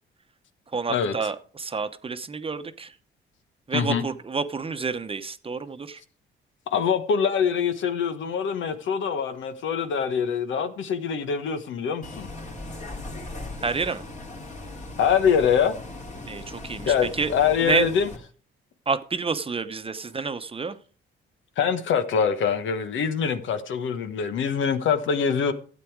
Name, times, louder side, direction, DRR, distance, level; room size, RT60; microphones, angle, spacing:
voice 1, 0.7-2.9 3.7-6.0 13.6-14.0 16.3-17.3 17.6-17.9 18.9-20.8, right 4 dB, 30° right, 1.0 m, -29 dB
voice 2, 3.7-4.0 6.7-12.3 15.0-15.7 16.9-18.1 21.6-25.5, left 7 dB, 75° left, 1.3 m, -24 dB
Bus, 12.0-18.2, left 2 dB, 40° left, 2.8 m, -38 dB
12.5 x 8.5 x 4.7 m
cardioid pair, 90°, 20 cm